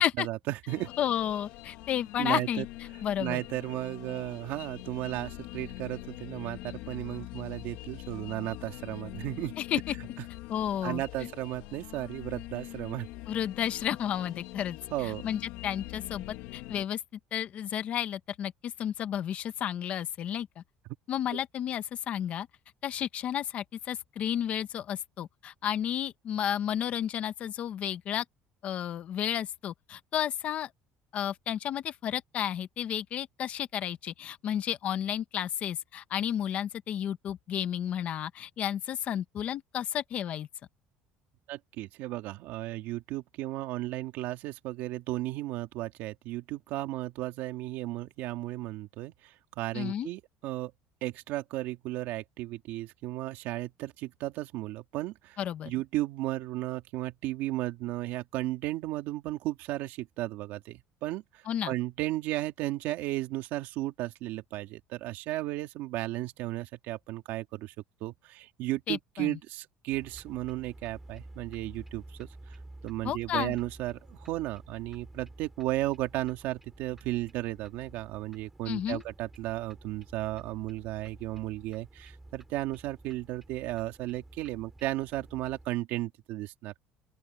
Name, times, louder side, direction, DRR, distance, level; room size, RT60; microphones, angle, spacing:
voice 1, 0.0-0.9 2.2-2.6 3.2-9.6 10.8-13.1 14.9-15.3 21.3-21.4 41.5-50.7 51.0-55.4 55.6-67.7 68.0-72.6 72.8-86.7, right 16 dB, 60° right, 2.5 m, -34 dB
sound 1, 0.7-16.9, left 18 dB, 80° left, 1.3 m, -44 dB
voice 2, 1.0-2.7 3.0-3.4 9.6-9.9 10.5-11.3 13.3-17.0 17.3-20.6 21.1-22.5 22.8-28.2 28.6-30.7 31.1-40.5 49.7-50.1 55.4-55.7 61.5-61.7 68.9-69.4 73.0-73.5 78.7-79.0, left 10 dB, 40° left, 0.9 m, -32 dB
sound 2, 69.9-85.7, right 2 dB, 5° right, 3.6 m, -51 dB
open air
cardioid pair, 165°, 4 cm